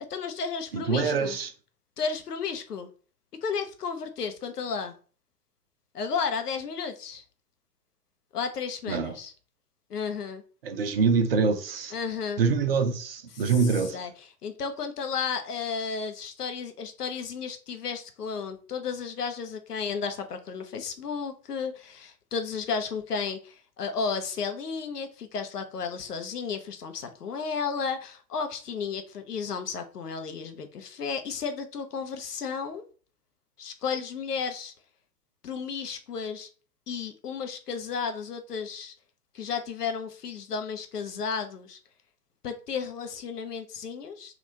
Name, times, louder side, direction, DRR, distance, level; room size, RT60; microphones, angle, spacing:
voice 1, 0.1-1.4 2.0-2.9 3.4-4.9 5.9-7.2 8.3-9.3 9.9-10.4 11.9-12.4 13.3-32.8 33.6-34.7 35.4-36.5 36.9-38.9 39.3-41.8 42.4-44.4, left 5 dB, 70° left, 0.7 m, -33 dB
voice 2, 0.7-1.5 8.9-9.1 10.6-11.9 12.4-14.0, right 5 dB, 40° right, 0.5 m, -25 dB
3.6 x 2.4 x 2.7 m
figure-of-eight pair, 110°, 49 cm